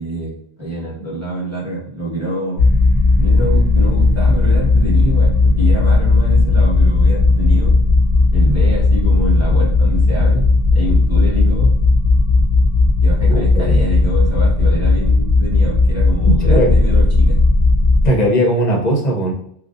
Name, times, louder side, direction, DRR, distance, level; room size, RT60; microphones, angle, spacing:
voice 1, 0.0-2.6 3.2-7.7 8.3-10.5 10.7-11.7 13.0-17.4, right 1 dB, 15° right, -6 dB, 0.8 m, -25 dB
sound 1, 2.6-18.1, left 3 dB, 55° right, 1.0 m, -14 dB
voice 2, 13.3-13.8 16.3-16.7 18.0-19.3, equal, 50° left, -1 dB, 0.5 m, -17 dB
2.6 x 2.0 x 2.3 m, 0.69 s
omnidirectional pair, 1.2 m